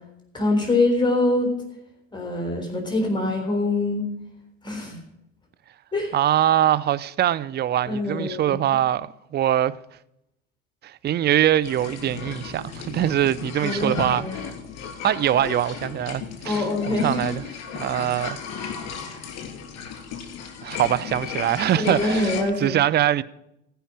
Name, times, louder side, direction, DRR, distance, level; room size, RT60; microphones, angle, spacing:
voice 1, 0.3-1.5 2.1-4.1 4.6-5.0 5.9-6.2 7.9-8.6 13.0-13.2 13.6-14.4 16.4-17.3 21.8-22.8, left 2 dB, 15° left, 3.5 m, -24 dB
voice 2, 6.1-9.8 10.8-14.5 15.0-17.4 17.7-18.4 20.6-23.2, right 11 dB, 30° right, 0.5 m, -23 dB
sound 1, 11.6-22.4, left 6 dB, 50° left, 2.8 m, -35 dB
15.0 x 5.7 x 8.5 m
hypercardioid pair, 85°, 34 cm